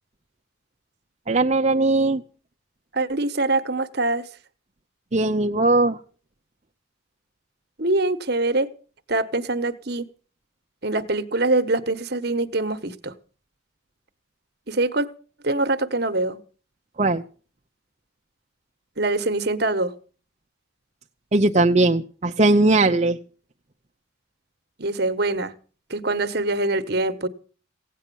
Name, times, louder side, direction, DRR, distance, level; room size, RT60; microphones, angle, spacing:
voice 1, 1.3-2.2 5.1-6.0 17.0-17.2 21.3-23.2, right 2 dB, 35° right, 0.7 m, -19 dB
voice 2, 2.9-4.2 7.8-8.7 9.1-10.1 10.8-13.1 14.7-15.1 15.4-16.4 19.0-19.9 24.8-25.5 25.9-27.3, right 2 dB, 50° right, 1.3 m, -24 dB
17.0 x 9.2 x 7.0 m
head